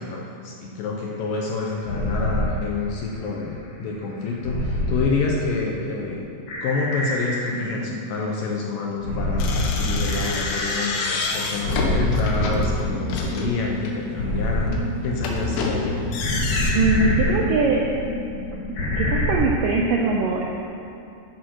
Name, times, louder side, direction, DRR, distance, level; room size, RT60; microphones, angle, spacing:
voice 1, 0.0-6.2 6.6-11.0 11.3-14.8 15.0-16.2, left 4 dB, 70° left, -1 dB, 2.2 m, -28 dB
sound 1, 1.8-2.4 4.4-5.0 6.5-8.0 9.0-11.1 11.6-19.3, left 1 dB, 50° left, 3.3 m, -26 dB
sound 2, 9.4-14.0 14.5-16.7, left 3 dB, 90° left, 3.5 m, -28 dB
voice 2, 16.7-17.8 19.0-20.4, right 3 dB, 80° right, -1 dB, 1.9 m, -21 dB
11.5 x 11.0 x 4.7 m, 2.7 s
omnidirectional pair, 4.9 m